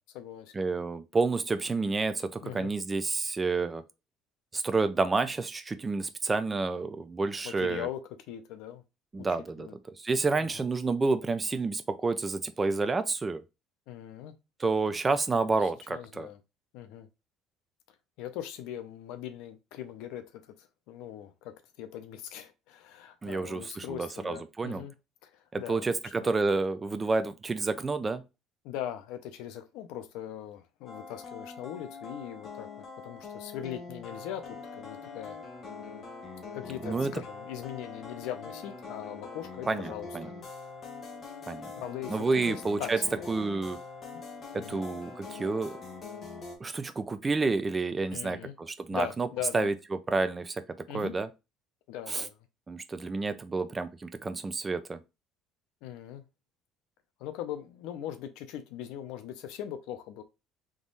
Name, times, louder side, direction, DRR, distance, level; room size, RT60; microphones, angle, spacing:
voice 1, 0.0-0.5 2.4-2.7 7.4-8.0 8.3-8.8 9.2-9.3 9.6-9.7 10.4-10.5 13.9-14.4 15.6-16.4 16.7-17.1 18.2-24.9 25.2-25.8 26.2-26.3 28.6-32.7 33.0-35.4 36.5-40.1 41.8-43.3 44.1-44.2 44.5-44.8 48.1-48.5 48.9-49.7 50.9-51.1 51.9-52.4 55.8-56.2 57.2-60.2, left 11 dB, 75° left, 0.7 m, -40 dB
voice 2, 0.5-3.8 4.5-7.9 9.1-13.4 14.6-16.3 23.2-24.8 25.5-28.2 36.8-37.1 39.7-40.3 41.5-41.7 42.1-43.0 43.3-43.8 44.5-45.7 46.6-49.3 49.5-49.7 50.1-50.6 50.9-51.3 52.1-52.3 52.7-55.0, right 3 dB, 15° right, 0.4 m, -29 dB
sound 1, 30.9-46.6, left 4 dB, 30° left, 1.2 m, -43 dB
3.7 x 3.1 x 3.9 m
cardioid pair, 170°, 0 cm